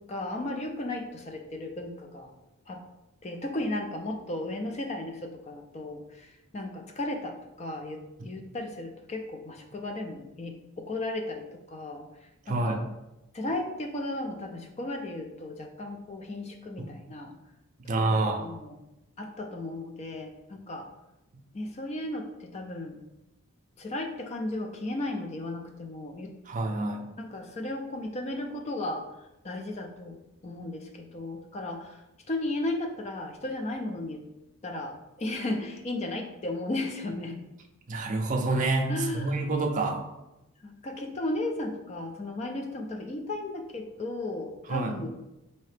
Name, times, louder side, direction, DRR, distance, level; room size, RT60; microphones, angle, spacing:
voice 1, 0.0-2.3 2.7-2.8 3.2-12.1 12.5-12.8 13.3-17.3 18.0-18.8 19.2-20.9 21.5-23.0 23.8-26.3 27.2-29.0 29.4-32.0 32.3-34.2 34.6-37.4 38.9-39.4 40.6-45.2, left 2 dB, 30° left, 4 dB, 0.4 m, -35 dB
voice 2, 12.5-12.8 16.8-16.9 17.9-18.5 26.5-27.0 37.9-40.0 44.7-45.0, right 2 dB, 35° right, 3 dB, 0.4 m, -28 dB
4.0 x 2.8 x 3.2 m, 0.95 s
head